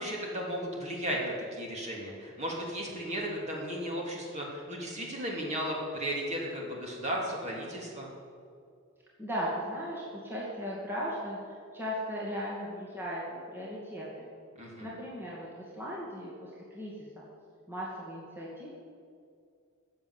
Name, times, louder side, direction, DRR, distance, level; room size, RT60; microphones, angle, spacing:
voice 1, 0.0-8.1 14.6-14.9, equal, 35° right, -2 dB, 2.9 m, -35 dB
voice 2, 9.2-14.3 14.8-17.2 17.7-18.7, equal, 10° right, -6 dB, 2.2 m, -37 dB
15.5 x 7.2 x 8.1 m, 2.3 s
head